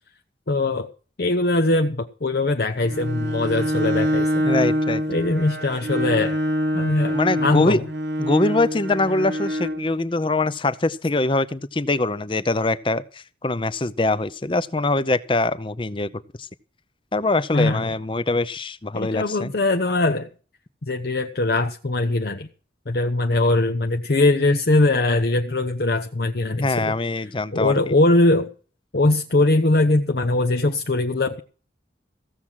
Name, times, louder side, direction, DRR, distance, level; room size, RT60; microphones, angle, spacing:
voice 1, 0.5-0.9 1.2-4.4 5.1-6.4 6.7-7.8 17.5-17.9 18.9-20.3 20.8-22.5 22.9-26.9 27.5-28.5 28.9-31.4, left 2 dB, 60° left, 0.8 m, -21 dB
Bowed string instrument, 2.8-9.9, equal, 75° right, 1.4 m, -25 dB
voice 2, 4.4-5.0 7.1-7.8 8.2-16.5 17.1-19.5 26.5-28.0, left 2 dB, 30° left, 0.7 m, -23 dB
15.5 x 7.3 x 6.2 m
head